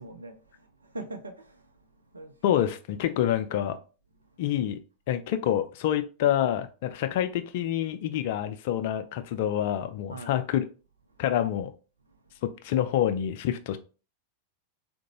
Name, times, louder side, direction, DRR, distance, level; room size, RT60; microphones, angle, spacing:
voice 1, 0.0-1.7 2.1-2.6 10.1-10.4, right 2 dB, 80° right, 0.5 m, -42 dB
voice 2, 2.4-3.8 4.4-4.8 5.1-10.6 11.2-11.7 12.4-13.8, left 11 dB, 50° left, 0.3 m, -27 dB
3.7 x 2.2 x 2.8 m
figure-of-eight pair, 90°, 0 cm